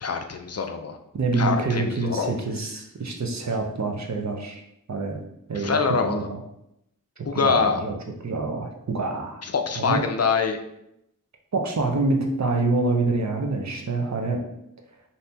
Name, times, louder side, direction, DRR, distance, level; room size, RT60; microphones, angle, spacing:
voice 1, 0.0-1.0 1.4-2.3 5.5-6.3 7.3-7.8 9.4-10.6, left 5 dB, 45° left, 5 dB, 0.5 m, -24 dB
voice 2, 1.1-4.6 4.9-5.2 5.5-6.4 7.3-9.4 9.8-10.0 11.5-14.4, right 3 dB, 55° right, 2 dB, 0.8 m, -26 dB
5.4 x 2.8 x 2.8 m, 0.81 s
wide cardioid pair, 60°, 34 cm